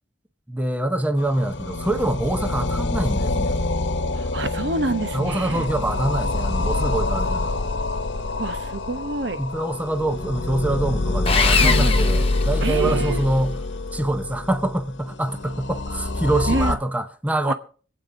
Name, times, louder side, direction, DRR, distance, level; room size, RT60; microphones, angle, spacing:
voice 1, 0.5-3.6 5.1-7.6 9.4-13.6 13.9-17.5, right 1 dB, 10° right, 0.7 m, -25 dB
sound 1, 1.2-16.8, left 2 dB, 75° left, 1.0 m, -25 dB
voice 2, 4.1-5.7 8.4-9.4 11.6-12.1 12.6-13.2 16.5-16.8 17.5-17.6, right 2 dB, 70° right, 1.1 m, -27 dB
Sawing, 11.3-13.2, left 5 dB, 30° left, 0.9 m, -23 dB
24.5 x 8.3 x 3.9 m
head